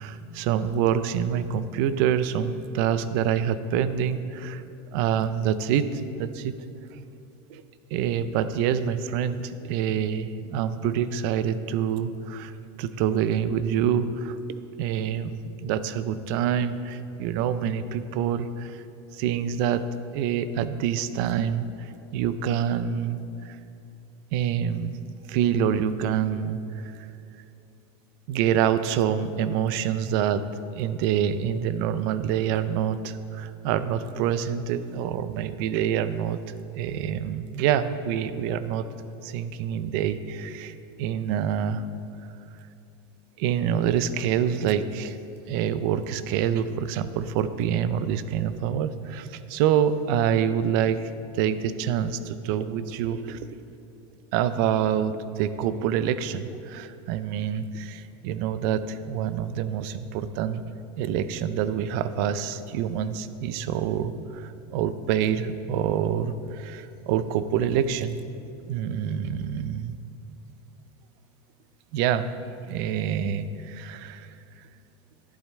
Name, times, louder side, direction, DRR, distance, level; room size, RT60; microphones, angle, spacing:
voice 1, 0.0-4.6 4.9-6.5 6.9-7.0 7.5-7.6 7.9-12.5 12.8-14.4 14.8-18.8 19.1-19.8 20.1-23.6 24.3-27.1 28.3-30.5 30.7-38.9 39.2-41.9 43.4-45.2 45.5-53.5 54.3-60.6 61.0-68.2 68.7-70.0 71.9-72.3 72.7-74.3, right 9 dB, 50° right, 13 dB, 0.4 m, -26 dB
11.5 x 10.5 x 3.2 m, 2.6 s
supercardioid pair, 165°, 14 cm